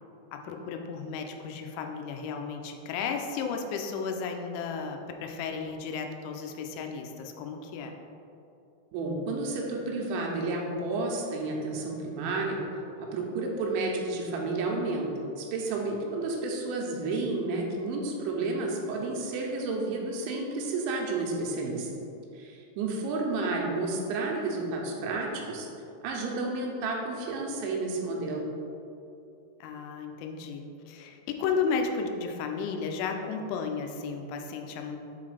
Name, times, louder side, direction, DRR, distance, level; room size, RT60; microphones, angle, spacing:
voice 1, 0.3-7.9 29.6-35.0, left 5 dB, 85° left, 4 dB, 2.9 m, -33 dB
voice 2, 8.9-12.6 13.0-15.1 15.4-21.9 22.3-25.7 26.0-28.5, right 3 dB, 85° right, -1 dB, 3.1 m, -31 dB
7.1 x 3.8 x 4.9 m, 2.7 s
omnidirectional pair, 5.3 m